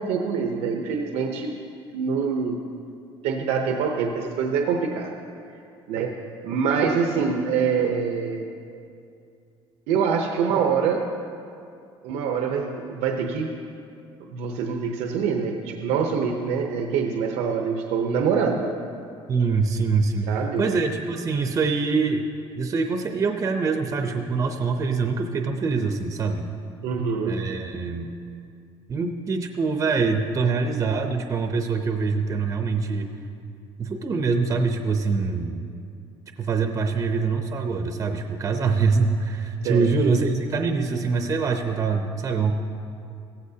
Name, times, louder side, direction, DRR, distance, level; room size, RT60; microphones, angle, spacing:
voice 1, 0.0-1.5 1.9-2.6 3.2-5.1 5.9-6.2 6.4-8.5 9.9-11.1 12.0-13.6 14.3-18.8 20.3-20.6 26.8-27.4 39.6-39.9, right 6 dB, 85° right, 3 dB, 0.9 m, -25 dB
voice 2, 19.3-20.3 20.6-22.2 22.6-26.5 27.3-28.1 28.9-33.1 33.8-35.7 36.4-42.5, right 4 dB, 30° right, 5 dB, 0.7 m, -24 dB
16.0 x 15.0 x 2.8 m, 2.5 s
cardioid pair, 150°, 11 cm